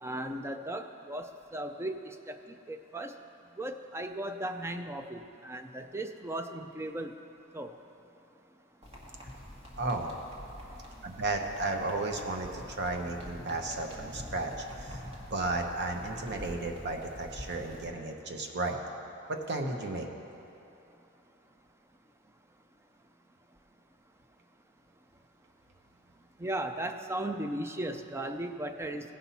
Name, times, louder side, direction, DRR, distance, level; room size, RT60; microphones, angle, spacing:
voice 1, 0.0-2.4 2.7-3.2 3.6-7.2 7.5-7.8 26.4-29.2, right 1 dB, 10° right, 7 dB, 0.4 m, -36 dB
sound 1, 8.8-17.9, left 1 dB, 30° right, 1.8 m, -46 dB
voice 2, 9.8-10.1 11.0-14.5 14.8-15.0 15.3-18.8 19.3-20.1, right 2 dB, 55° right, 3 dB, 0.9 m, -33 dB
16.5 x 5.7 x 4.2 m, 3.0 s
head